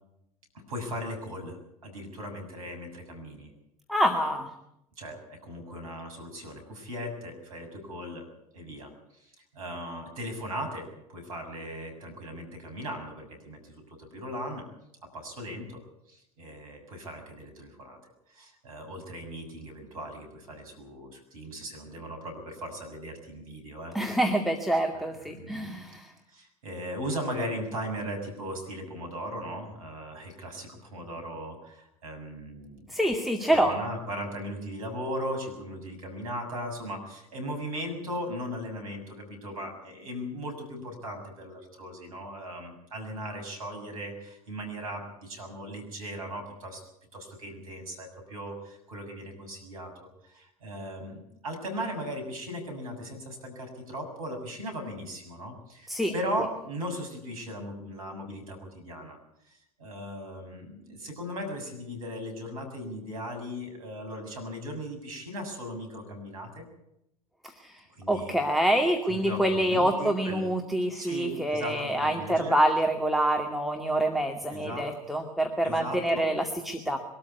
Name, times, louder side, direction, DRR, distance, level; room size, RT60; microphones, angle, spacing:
voice 1, 0.5-3.5 5.0-8.3 8.5-14.6 15.1-15.8 16.1-18.0 18.3-24.0 25.3-25.7 26.3-32.9 33.5-46.8 47.1-59.2 59.5-66.7 68.0-68.4 69.1-70.5 70.9-72.6 74.5-74.9 75.6-76.3, equal, 70° right, 5 dB, 6.9 m, -38 dB
voice 2, 3.9-4.5 23.9-26.1 32.9-33.7 55.9-56.1 67.4-77.0, right 1 dB, ahead, 4 dB, 2.2 m, -26 dB
23.0 x 13.5 x 9.5 m, 0.80 s
figure-of-eight pair, 75°, 19 cm